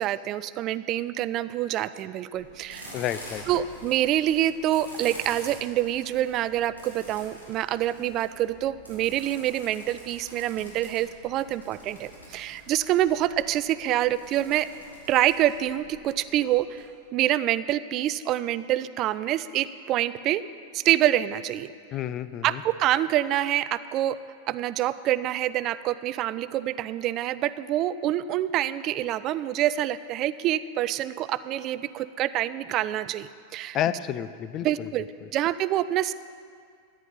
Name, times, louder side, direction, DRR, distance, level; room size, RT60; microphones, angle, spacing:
voice 1, 0.0-2.9 3.5-14.7 15.1-16.8 17.1-20.4 20.7-21.7 22.4-24.2 24.5-33.8 34.6-35.1 35.3-36.1, right 13 dB, 35° right, 15 dB, 0.3 m, -26 dB
sound 1, 2.3-16.8, equal, 80° left, 3.6 m, -47 dB
voice 2, 2.9-3.4 21.9-22.6 33.7-34.9, left 11 dB, 35° left, 14 dB, 0.5 m, -30 dB
14.0 x 9.7 x 5.6 m, 2.2 s
figure-of-eight pair, 90°, 0 cm